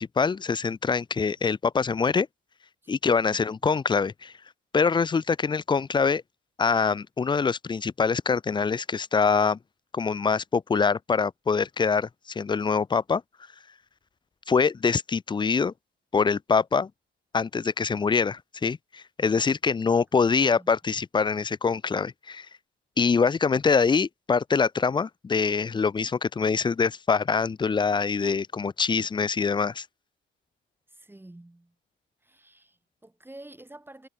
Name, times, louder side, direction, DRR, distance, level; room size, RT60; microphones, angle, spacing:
voice 1, 0.0-2.3 2.9-4.3 4.7-6.2 6.6-9.6 9.9-13.2 14.5-15.7 16.1-16.9 17.3-22.5 23.0-29.9, left 5 dB, 25° left, 0.5 m, -24 dB
voice 2, 3.3-3.6 20.3-20.7 30.9-31.7 32.2-34.1, right 1 dB, 10° right, 7.2 m, -49 dB
cardioid pair, 90°, 20 cm